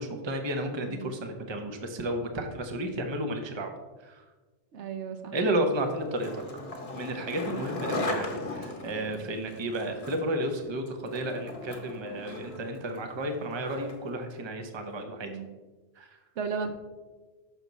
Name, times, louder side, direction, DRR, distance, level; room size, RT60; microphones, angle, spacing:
voice 1, 0.0-3.7 4.0-4.2 5.3-6.4 6.9-15.3 16.0-16.2, right 1 dB, 30° right, 5 dB, 0.7 m, -32 dB
voice 2, 0.8-1.1 4.7-5.4 7.4-7.7 15.3-15.5 16.4-16.7, right 6 dB, 80° right, 6 dB, 1.0 m, -35 dB
Skateboard, 5.8-14.1, left 2 dB, 35° left, 0.9 m, -38 dB
6.2 x 5.9 x 4.0 m, 1.3 s
omnidirectional pair, 1.2 m